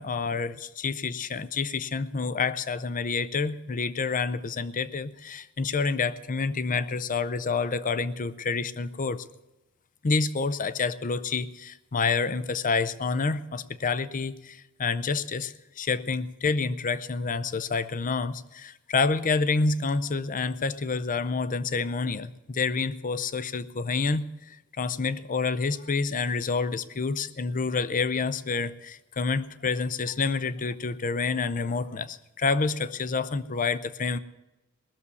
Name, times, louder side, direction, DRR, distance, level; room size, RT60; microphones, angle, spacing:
voice 1, 0.0-9.2 10.0-34.2, left 4 dB, 40° left, 15 dB, 0.6 m, -28 dB
19.5 x 6.9 x 8.3 m, 0.99 s
head